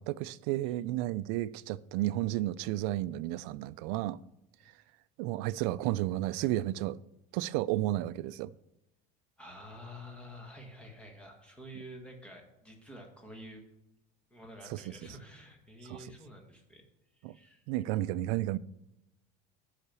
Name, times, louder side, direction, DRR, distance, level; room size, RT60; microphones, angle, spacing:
voice 1, 0.0-4.2 5.2-7.0 7.3-8.5 14.7-14.8 15.9-16.0 17.2-17.3 17.7-18.6, right 15 dB, 75° right, 0.4 m, -32 dB
voice 2, 9.4-13.6 14.3-16.8 17.1-17.7, equal, 5° left, 1.6 m, -49 dB
9.8 x 5.8 x 6.9 m
cardioid pair, 170°, 18 cm